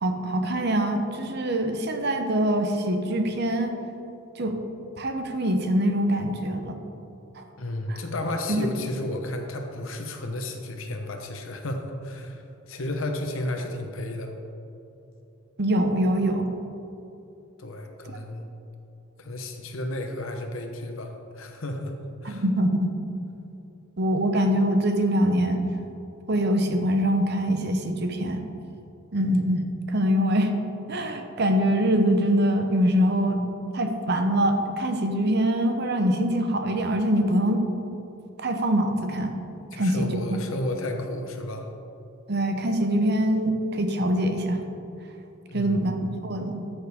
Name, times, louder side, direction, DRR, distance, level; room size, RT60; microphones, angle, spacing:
voice 1, 0.0-3.7 4.4-4.6 5.0-6.8 7.4-7.5 7.9-8.0 8.5-8.6 15.6-16.5 22.2-22.9 24.0-25.6 26.3-28.4 29.1-30.5 30.9-33.4 33.7-37.6 38.4-39.4 39.7-40.2 42.3-44.6 45.5-46.6, equal, 50° right, 5 dB, 0.8 m, -24 dB
voice 2, 7.6-14.3 17.6-18.5 19.2-21.9 22.2-22.4 39.7-41.7 45.5-46.0, left 1 dB, 70° left, 4 dB, 1.0 m, -32 dB
13.0 x 6.4 x 3.6 m, 2.9 s
head